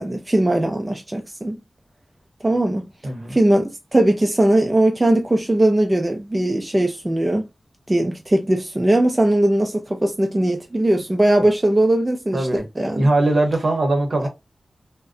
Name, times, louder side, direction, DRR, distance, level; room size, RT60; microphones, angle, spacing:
voice 1, 0.0-1.6 2.4-2.9 3.3-7.5 7.9-12.5 12.8-13.0, right 1 dB, 25° right, 0.5 m, -19 dB
voice 2, 3.0-3.4 12.3-12.7 12.9-14.3, right 2 dB, 60° right, 0.9 m, -20 dB
2.5 x 2.1 x 2.4 m
cardioid pair, 50°, 0 cm